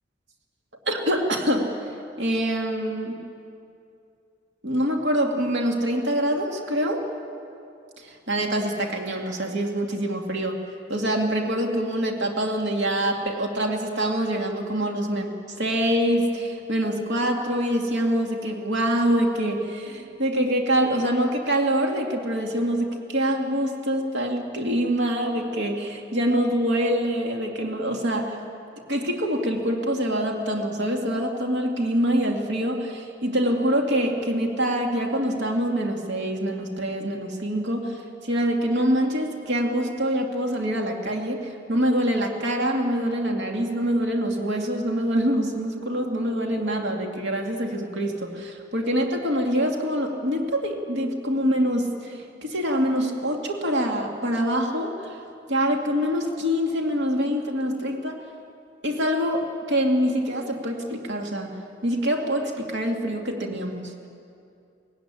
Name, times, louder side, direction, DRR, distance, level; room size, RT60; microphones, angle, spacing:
voice 1, 0.9-1.7 2.2-3.2 4.6-7.0 8.0-10.6 10.9-15.3 15.6-28.4 28.9-55.2 55.5-58.2 58.8-61.5 61.8-64.1, equal, 80° right, 2 dB, 2.4 m, -25 dB
19.0 x 16.5 x 10.0 m, 2.5 s
head